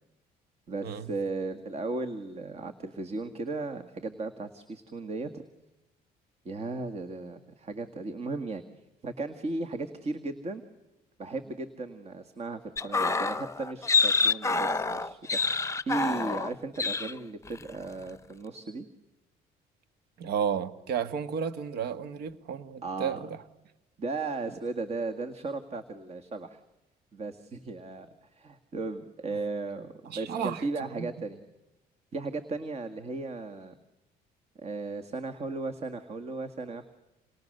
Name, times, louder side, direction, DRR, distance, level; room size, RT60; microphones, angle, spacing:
voice 1, 0.7-5.4 6.5-8.6 9.0-10.6 11.2-18.9 22.8-23.2 24.0-26.6 27.1-31.4 32.1-33.8 34.6-36.9, right 3 dB, 40° right, 1.8 m, -36 dB
sound 1, 12.8-16.5 16.8-17.1 17.5-17.7, left 4 dB, 15° left, 0.9 m, -27 dB
voice 2, 20.2-23.4 30.0-31.1, right 7 dB, 70° right, 1.6 m, -33 dB
29.5 x 28.0 x 6.7 m
cardioid pair, 110°, 17 cm